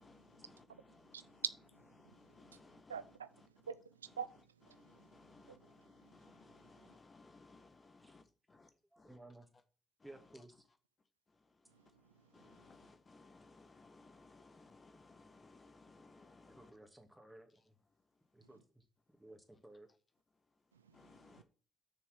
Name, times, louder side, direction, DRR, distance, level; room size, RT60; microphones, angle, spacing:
voice 1, 0.0-1.4 2.0-3.5 4.1-4.2 4.7-9.2 9.5-9.6 10.0-10.8 11.3-16.8 17.5-18.6 19.1-19.3 20.3-21.4, left 3 dB, 35° left, 1.4 m, -63 dB
voice 2, 1.1-2.6 2.9-5.2 5.5-5.7 6.0-6.2 6.5-6.6 6.9-7.0 11.7-12.5 18.4-18.6 20.7-21.4, right 7 dB, 85° right, 0.3 m, -48 dB
voice 3, 8.9-9.5 10.0-10.5 16.5-17.8 18.3-18.8 19.1-19.9, right 1 dB, 10° right, 2.4 m, -57 dB
7.0 x 6.4 x 6.1 m
figure-of-eight pair, 40°, 0 cm